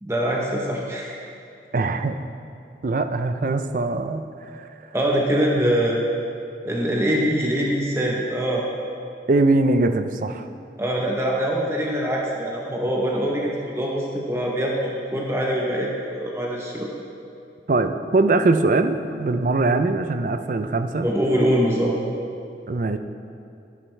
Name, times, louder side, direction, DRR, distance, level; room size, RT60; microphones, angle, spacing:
voice 1, 0.0-1.1 4.9-6.0 6.6-8.6 10.8-16.9 21.0-22.0, equal, 15° right, -2 dB, 0.8 m, -23 dB
voice 2, 1.7-2.2 2.8-4.3 4.5-4.7 9.3-10.4 17.7-21.1 22.7-23.0, right 2 dB, 45° right, 8 dB, 0.4 m, -21 dB
11.0 x 10.5 x 3.3 m, 2.6 s
head